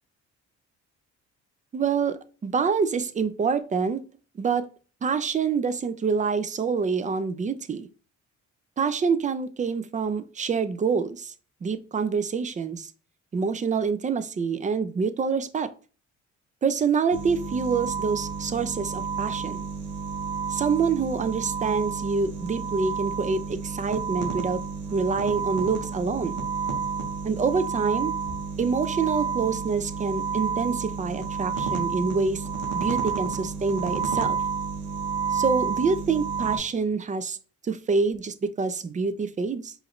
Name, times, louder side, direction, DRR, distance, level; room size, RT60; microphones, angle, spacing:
voice 1, 1.7-4.0 4.4-4.7 5.0-7.9 8.8-11.3 11.6-12.9 13.3-15.7 16.6-19.7 20.5-24.6 24.9-26.3 27.2-28.1 28.6-32.4 32.7-34.4 35.3-37.4 37.7-39.7, right 5 dB, 25° right, 0.4 m, -26 dB
sound 1, 17.1-36.6, right 6 dB, 75° right, 0.9 m, -30 dB
4.8 x 2.6 x 3.0 m
cardioid pair, 90°, 30 cm